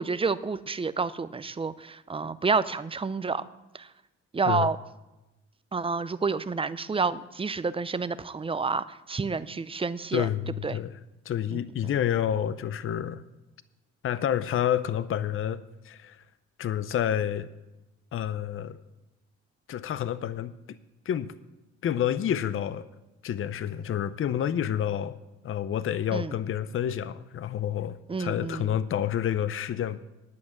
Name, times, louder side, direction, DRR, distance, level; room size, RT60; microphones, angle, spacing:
voice 1, 0.0-3.4 3.7-3.9 4.3-4.8 5.7-10.3 10.6-10.8 26.1-26.3 28.1-28.7, right 4 dB, 20° right, 15 dB, 0.5 m, -29 dB
voice 2, 10.1-10.9 11.2-13.2 14.0-16.2 16.6-17.5 18.1-18.8 19.7-20.8 21.1-21.3 21.8-22.8 23.2-25.2 25.4-30.0, left 10 dB, 45° left, 15 dB, 0.6 m, -29 dB
10.5 x 6.1 x 8.8 m, 0.99 s
cardioid pair, 90°, 30 cm